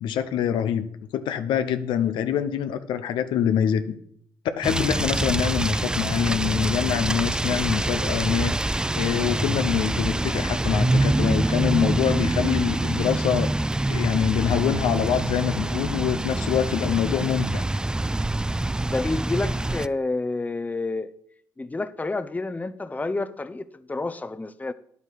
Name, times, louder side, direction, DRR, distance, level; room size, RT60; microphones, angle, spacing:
voice 1, 0.0-0.9 1.1-3.9 4.6-8.6 9.0-13.5 13.9-17.7, left 9 dB, 85° left, 0.7 m, -25 dB
sound 1, 4.6-19.9, right 2 dB, 10° right, 0.4 m, -25 dB
voice 2, 18.8-21.1 21.6-24.7, left 3 dB, 20° left, 0.7 m, -29 dB
9.9 x 8.1 x 4.7 m
supercardioid pair, 65°, 8 cm